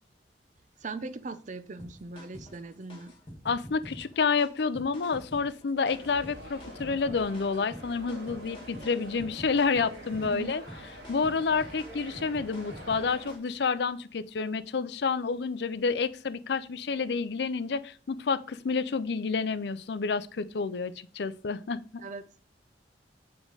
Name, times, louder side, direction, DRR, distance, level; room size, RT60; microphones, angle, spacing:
voice 1, 0.8-3.1 10.2-10.6 22.0-22.4, right 3 dB, 45° right, 13 dB, 0.6 m, -40 dB
sound 1, 1.8-13.6, equal, 30° left, 1.5 m, -47 dB
voice 2, 3.4-10.6 11.1-21.8, left 5 dB, 70° left, 14 dB, 0.5 m, -29 dB
sound 2, 5.9-13.4, equal, 85° right, 2.1 m, -46 dB
8.2 x 4.8 x 3.9 m, 0.40 s
head